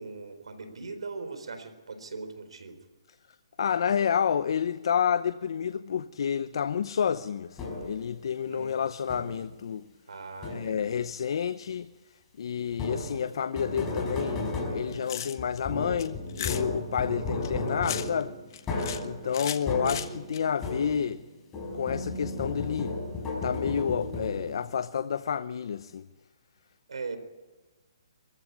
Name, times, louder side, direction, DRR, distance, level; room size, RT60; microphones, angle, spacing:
voice 1, 0.0-2.8 8.5-8.8 10.1-11.0 19.2-19.6 26.9-27.2, right 4 dB, 85° right, 4.3 m, -40 dB
voice 2, 3.6-9.9 10.5-11.9 12.4-18.4 19.0-21.2 21.7-22.9 23.4-26.1, left 7 dB, 60° left, 0.8 m, -29 dB
sound 1, 7.6-8.1 9.1-9.6 10.4-11.0 12.7-21.2 21.5-24.7, left 2 dB, 15° left, 5.1 m, -34 dB
sound 2, 14.8-15.6 16.0-16.6 17.4-18.2 18.5-19.0 19.3-20.4, left 10 dB, 45° left, 1.3 m, -36 dB
23.5 x 15.0 x 9.8 m
hypercardioid pair, 160°, 3 cm